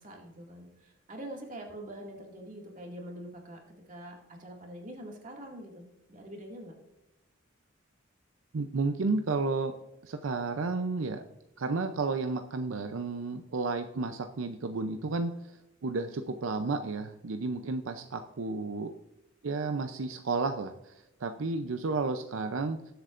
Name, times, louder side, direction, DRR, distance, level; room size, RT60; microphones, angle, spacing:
voice 1, 0.0-3.6 3.9-6.8, right 1 dB, 40° right, 0 dB, 2.1 m, -44 dB
voice 2, 8.5-9.7 10.0-11.3 11.6-15.6 15.8-18.9 19.4-20.9 21.2-22.8, right 3 dB, 80° right, 7 dB, 0.6 m, -32 dB
19.5 x 7.9 x 2.5 m, 0.89 s
head